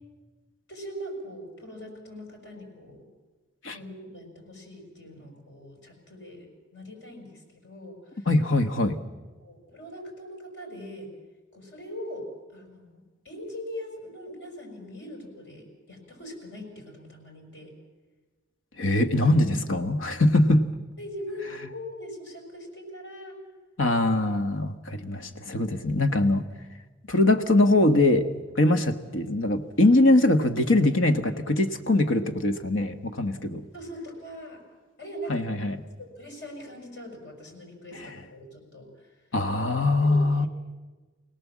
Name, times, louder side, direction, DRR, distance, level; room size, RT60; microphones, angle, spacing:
voice 1, 0.7-3.1 3.7-8.3 9.4-11.1 11.5-17.7 21.0-23.4 24.9-25.4 33.7-34.6 35.0-35.5 36.0-39.1 40.0-40.5, equal, 60° left, 2 dB, 5.9 m, -41 dB
voice 2, 8.3-9.0 18.8-20.7 23.8-26.4 27.1-28.3 28.5-33.6 35.3-35.8 38.0-38.1 39.3-40.5, left 2 dB, 85° left, 8 dB, 1.4 m, -22 dB
26.0 x 18.0 x 7.4 m, 1.3 s
head